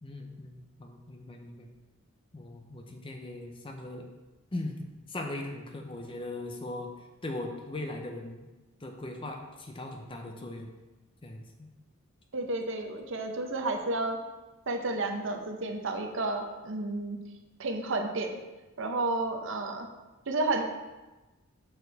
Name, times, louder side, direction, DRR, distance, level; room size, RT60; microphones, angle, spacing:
voice 1, 0.0-1.7 2.3-4.1 4.5-4.8 5.1-6.9 7.2-8.5 8.8-10.7 11.2-11.4, left 2 dB, 25° left, 3 dB, 0.6 m, -39 dB
voice 2, 12.3-14.2 14.7-17.2 17.6-18.4 18.8-19.9 20.3-20.6, right 2 dB, 60° right, 4 dB, 0.7 m, -31 dB
6.6 x 4.4 x 4.0 m, 1.1 s
head